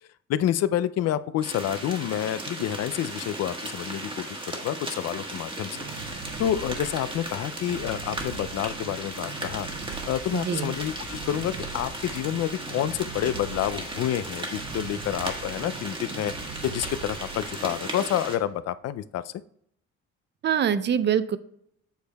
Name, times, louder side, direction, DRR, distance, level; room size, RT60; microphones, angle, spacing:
voice 1, 0.3-5.7 6.4-9.7 10.1-16.3 16.6-19.3, left 11 dB, 60° left, 14 dB, 0.4 m, -28 dB
sound 1, 1.4-18.4, right 1 dB, 15° right, 1.4 m, -36 dB
sound 2, 5.7-18.5, right 6 dB, 80° right, 1.0 m, -42 dB
voice 2, 10.3-10.7 20.4-21.4, right 8 dB, 40° right, 14 dB, 0.5 m, -24 dB
8.0 x 6.4 x 2.3 m, 0.69 s
cardioid pair, 100°, 30 cm